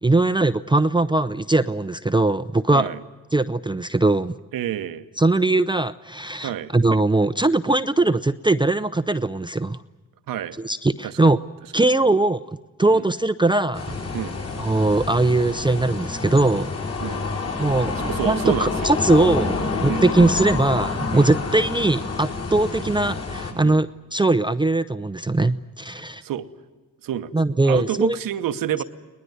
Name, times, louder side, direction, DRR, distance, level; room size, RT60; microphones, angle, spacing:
voice 1, 0.0-2.9 3.3-4.4 5.2-9.8 10.6-11.4 11.7-12.4 12.8-14.0 14.6-16.7 17.6-17.9 18.2-19.6 19.8-26.2 27.3-28.2, right 2 dB, 15° right, 11 dB, 0.7 m, -20 dB
voice 2, 2.7-3.0 4.5-5.0 6.4-6.7 10.3-10.6 11.0-11.3 12.0-12.1 12.9-13.0 14.1-14.3 17.0-17.2 18.0-18.7 19.8-20.0 21.1-21.3 23.6-23.8 25.9-26.5 27.0-27.3 27.6-28.8, right 11 dB, 80° right, 10 dB, 1.1 m, -28 dB
sound 1, 13.7-23.5, left 3 dB, 45° left, 6.7 m, -28 dB
22.0 x 19.5 x 9.5 m, 1.2 s
cardioid pair, 60°, 33 cm